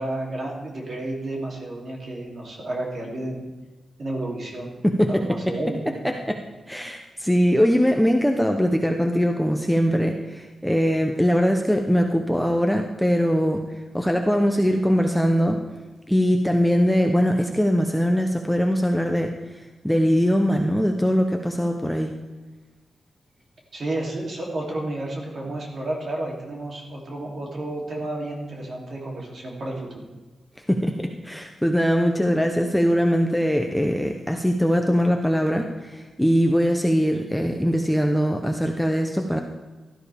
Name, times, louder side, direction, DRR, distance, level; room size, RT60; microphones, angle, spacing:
voice 1, 0.0-3.5 4.0-4.7 5.1-6.0 23.7-30.1, right 1 dB, 40° right, -1 dB, 2.9 m, -31 dB
voice 2, 4.8-5.5 6.3-6.4 6.7-13.6 13.9-15.6 16.1-22.1 30.7-39.4, equal, ahead, 3 dB, 0.7 m, -21 dB
16.5 x 13.0 x 3.5 m, 1.2 s
wide cardioid pair, 180°, 0 cm